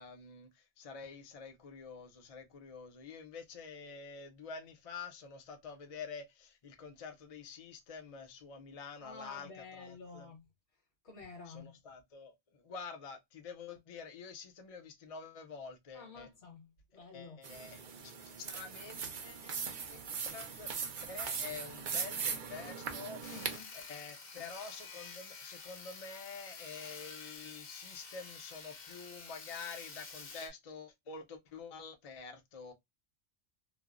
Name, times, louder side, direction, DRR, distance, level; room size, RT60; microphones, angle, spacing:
voice 1, 0.0-10.3 11.5-16.3 17.1-19.6 19.9-20.7 21.0-23.2 23.7-32.7, left 5 dB, 40° left, 0.6 m, -48 dB
voice 2, 9.0-10.5 11.0-11.7 15.9-17.4 23.3-23.7, left 4 dB, 80° left, 1.6 m, -50 dB
sound 1, 17.4-23.6, right 6 dB, 55° right, 0.7 m, -40 dB
Sawing, 23.2-30.5, left 4 dB, 60° left, 0.9 m, -49 dB
3.2 x 2.0 x 2.3 m
omnidirectional pair, 1.1 m